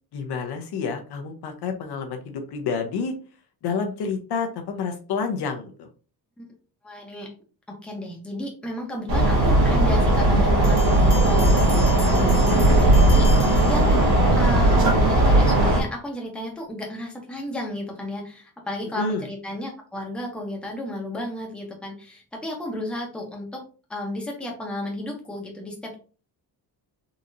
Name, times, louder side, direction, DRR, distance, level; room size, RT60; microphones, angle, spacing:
voice 1, 0.1-3.1 3.6-5.9 19.0-19.2, left 5 dB, 70° left, 5 dB, 0.7 m, -29 dB
voice 2, 6.8-7.3 7.7-13.3 13.7-14.0 14.3-23.6 23.9-26.0, left 1 dB, 5° left, 0 dB, 0.8 m, -33 dB
sound 1, 9.1-15.8, right 1 dB, 60° right, 1.4 m, -17 dB
Bell, 10.6-14.4, left 5 dB, 35° left, 0.9 m, -38 dB
3.9 x 2.8 x 2.5 m, 0.37 s
cardioid pair, 150°, 41 cm